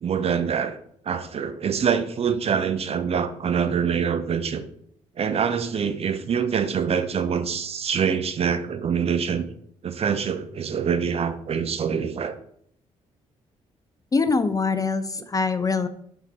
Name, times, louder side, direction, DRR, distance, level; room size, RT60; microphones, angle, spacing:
voice 1, 0.0-0.8 1.1-4.6 5.2-9.5 9.8-12.4, right 7 dB, 40° right, 10 dB, 0.6 m, -25 dB
voice 2, 14.1-15.9, left 4 dB, 20° left, 12 dB, 0.5 m, -23 dB
5.6 x 4.6 x 4.2 m, 0.66 s
figure-of-eight pair, 40°, 17 cm